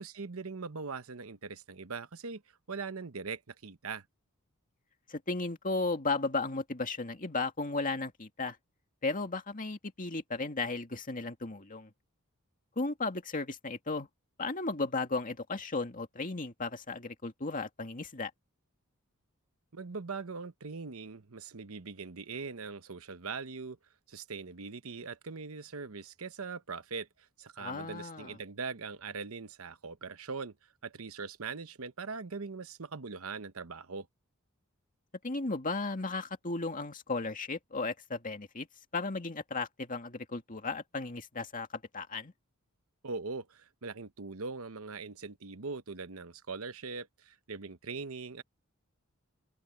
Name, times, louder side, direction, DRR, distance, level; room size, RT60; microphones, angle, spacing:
voice 1, 0.0-2.4 2.7-4.0 19.7-23.8 24.1-34.1 43.0-48.4, right 4 dB, 70° right, 1.0 m, -41 dB
voice 2, 5.1-8.6 9.0-11.9 12.8-14.1 14.4-18.3 27.6-28.3 35.2-38.7 38.9-42.3, left 3 dB, 40° left, 2.3 m, -35 dB
open air
head